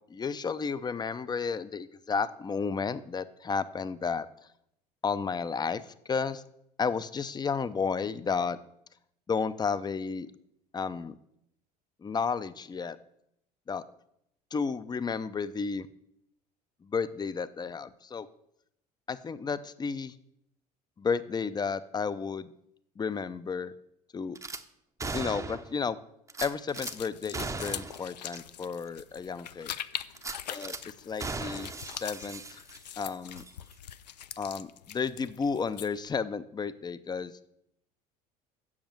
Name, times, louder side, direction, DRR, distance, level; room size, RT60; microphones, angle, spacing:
voice 1, 0.1-4.3 5.0-6.4 6.8-8.6 9.3-10.3 10.7-11.1 12.0-13.0 13.7-13.8 14.5-15.9 16.8-18.3 19.1-20.1 21.0-22.5 23.0-23.7 24.1-24.4 25.1-26.0 26.4-29.7 30.5-31.7 32.0-32.6 33.0-33.4 34.4-37.4, left 5 dB, 20° left, 15 dB, 0.6 m, -32 dB
Gunshot gunfire / Glass, 24.4-24.6 25.0-25.8 26.3-26.9 27.3-28.0 28.3-28.4 28.9-29.0 30.1-30.8 31.2-33.0 33.3-33.5, right 3 dB, 15° right, 0.8 m, -37 dB
sound 1, 26.7-36.1, left 10 dB, 85° left, 0.5 m, -42 dB
7.3 x 6.9 x 7.5 m, 0.77 s
figure-of-eight pair, 65°, 21 cm